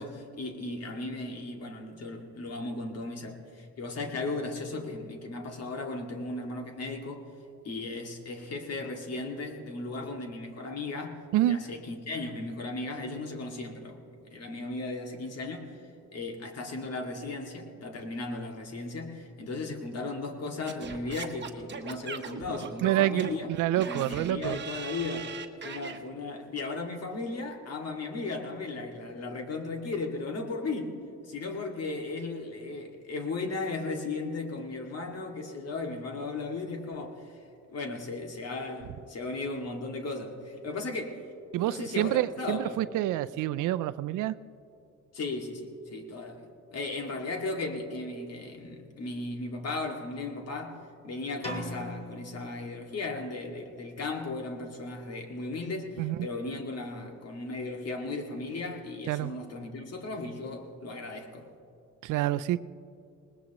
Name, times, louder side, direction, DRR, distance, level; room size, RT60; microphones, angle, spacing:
voice 1, 0.0-7.3 7.6-11.2 11.5-14.0 14.3-23.5 23.8-25.4 25.6-31.0 31.3-37.3 37.7-41.2 41.6-42.8 45.1-61.5, left 3 dB, 55° left, 2 dB, 2.2 m, -36 dB
Singing / Scratching (performance technique), 20.7-26.0, right 6 dB, 35° right, 1.2 m, -40 dB
voice 2, 22.8-24.6 41.5-44.4 56.0-56.2 59.1-59.3 62.0-62.6, right 14 dB, 85° right, 14 dB, 0.5 m, -27 dB
sound 1, 51.4-53.3, left 1 dB, 20° left, 2.1 m, -40 dB
20.0 x 20.0 x 3.0 m, 2.6 s
cardioid pair, 90°, 30 cm